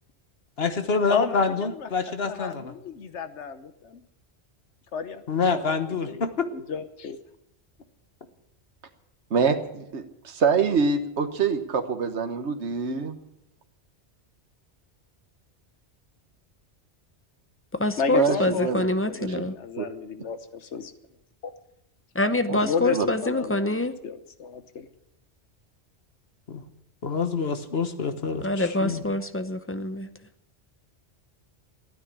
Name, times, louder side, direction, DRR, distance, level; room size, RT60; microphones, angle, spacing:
voice 1, 0.6-2.7 5.3-6.3 26.5-26.6 27.0-29.0, left 4 dB, 65° left, 8 dB, 1.5 m, -26 dB
voice 2, 1.1-4.0 4.9-5.2 5.5-7.2 18.0-20.9 21.4-21.5 22.4-23.7 24.0-24.9, left 6 dB, 90° left, 10 dB, 1.3 m, -33 dB
voice 3, 9.3-13.2 18.1-18.8 19.2-19.5 19.8-19.9 22.5-22.6 22.9-23.0, right 5 dB, 75° right, 7 dB, 1.5 m, -25 dB
voice 4, 17.7-19.6 22.1-24.0 28.4-30.1, left 2 dB, 15° left, 10 dB, 0.7 m, -26 dB
15.0 x 9.7 x 8.5 m, 0.82 s
omnidirectional pair, 1.2 m